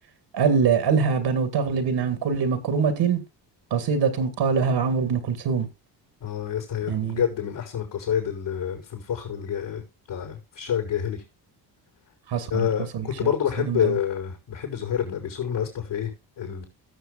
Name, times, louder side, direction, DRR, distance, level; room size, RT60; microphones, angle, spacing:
voice 1, 0.3-3.2 3.7-5.7 6.9-7.2 12.3-12.7 12.9-13.3 13.7-14.0, right 6 dB, 70° right, 2.1 m, -23 dB
voice 2, 6.2-11.2 12.5-16.7, left 9 dB, 70° left, 5.4 m, -28 dB
19.0 x 6.7 x 2.4 m
cardioid pair, 80°, 43 cm